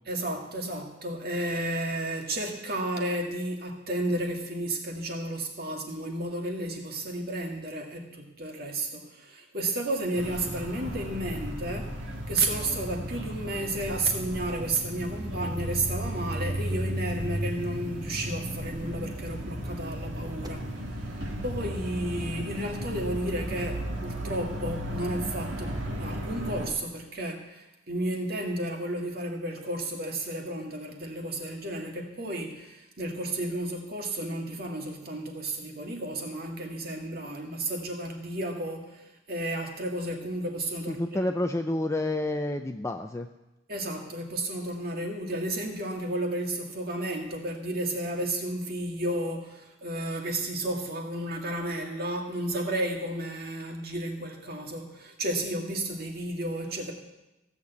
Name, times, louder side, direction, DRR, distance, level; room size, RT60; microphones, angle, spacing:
voice 1, 0.1-41.0 43.7-56.9, right 1 dB, 50° right, 2 dB, 2.1 m, -32 dB
sound 1, 10.2-26.7, equal, 70° right, 2.1 m, -35 dB
sound 2, 10.5-20.5, equal, 20° right, 0.8 m, -48 dB
voice 2, 40.9-43.3, left 1 dB, 15° left, 6 dB, 0.4 m, -29 dB
16.0 x 6.8 x 8.2 m, 0.97 s
head